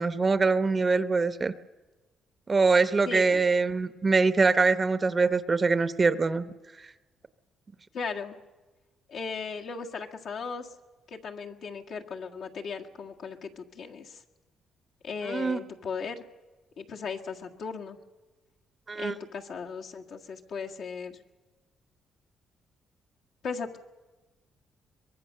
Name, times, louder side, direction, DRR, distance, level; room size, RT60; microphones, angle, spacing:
voice 1, 0.0-1.5 2.5-6.4 15.2-15.6 18.9-19.1, right 4 dB, 30° right, 13 dB, 0.9 m, -23 dB
voice 2, 3.1-3.4 7.9-8.4 9.1-10.7 11.1-14.2 15.0-16.2 16.8-18.0 18.9-21.2 23.4-23.8, left 5 dB, 70° left, 1 dB, 1.8 m, -37 dB
23.5 x 22.0 x 6.6 m, 1.2 s
cardioid pair, 90°, 0 cm